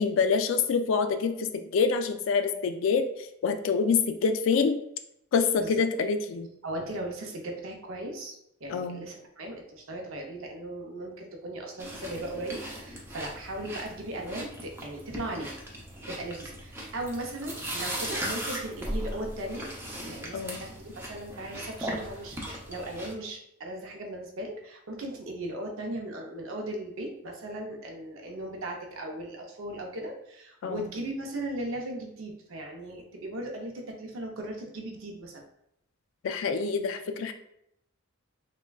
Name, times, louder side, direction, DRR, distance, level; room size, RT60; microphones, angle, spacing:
voice 1, 0.0-3.0 3.4-4.8 5.3-6.5 8.7-9.0 20.3-20.6 30.6-30.8 36.2-37.3, left 5 dB, 70° left, 7 dB, 0.3 m, -26 dB
voice 2, 6.6-15.5 16.1-19.8 20.0-35.4, right 1 dB, 80° right, 2 dB, 0.6 m, -37 dB
sound 1, 11.8-23.1, right 1 dB, 10° right, 0.4 m, -38 dB
3.3 x 2.2 x 2.2 m, 0.77 s
head